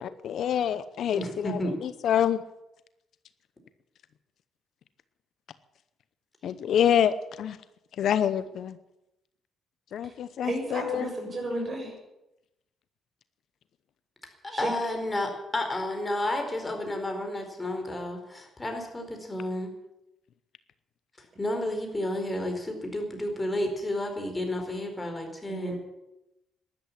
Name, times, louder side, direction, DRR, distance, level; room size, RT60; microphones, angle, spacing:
voice 1, 0.0-2.4 6.4-7.6 8.0-8.8 9.9-11.1, left 9 dB, 70° left, 14 dB, 0.8 m, -27 dB
voice 2, 1.1-1.7 14.4-19.7 21.4-25.7, left 1 dB, 20° left, 3 dB, 4.5 m, -31 dB
voice 3, 10.4-11.9 14.5-14.7 25.5-25.8, right 2 dB, 35° right, 2 dB, 6.6 m, -32 dB
12.5 x 11.5 x 9.8 m, 0.90 s
cardioid pair, 90°, 0 cm